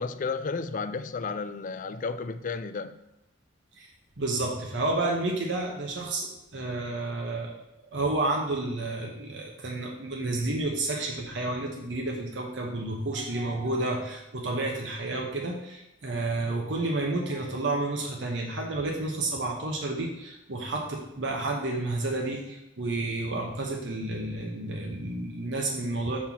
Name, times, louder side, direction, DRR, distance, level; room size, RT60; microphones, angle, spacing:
voice 1, 0.0-3.0, left 4 dB, 45° left, 0.4 m, -32 dB
voice 2, 4.2-7.5 7.9-26.2, right 2 dB, 65° right, 1.0 m, -30 dB
5.6 x 4.4 x 5.9 m
head